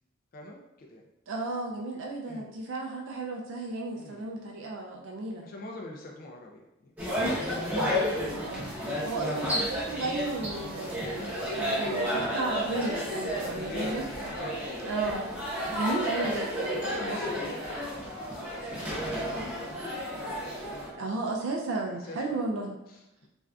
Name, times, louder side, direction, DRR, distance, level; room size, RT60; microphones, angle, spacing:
voice 1, 0.3-1.0 2.3-2.5 3.9-4.2 5.4-7.3 13.1-14.9 15.7-16.1 16.7-19.9 20.5-21.0 22.0-22.5 22.9-23.3, left 2 dB, 45° left, 0 dB, 0.3 m, -44 dB
voice 2, 1.3-5.5 8.2-8.7 9.0-11.3 11.5-14.3 14.8-15.3 15.7-16.5 21.0-22.7, right 3 dB, 65° right, 0 dB, 0.4 m, -33 dB
sound 1, 7.0-20.9, equal, 10° right, 0.7 m, -32 dB
3.3 x 2.5 x 2.3 m, 0.92 s
head